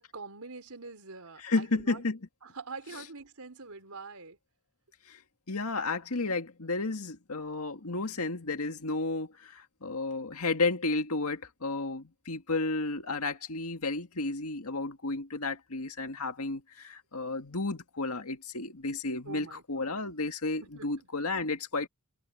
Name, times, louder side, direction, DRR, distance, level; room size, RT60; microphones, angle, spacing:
voice 1, 0.0-2.0 2.4-4.4 19.3-19.9 20.6-21.1, right 4 dB, 85° right, 4.0 m, -45 dB
voice 2, 1.4-2.2 2.9-3.1 5.1-5.2 5.5-21.9, left 3 dB, 85° left, 2.0 m, -32 dB
head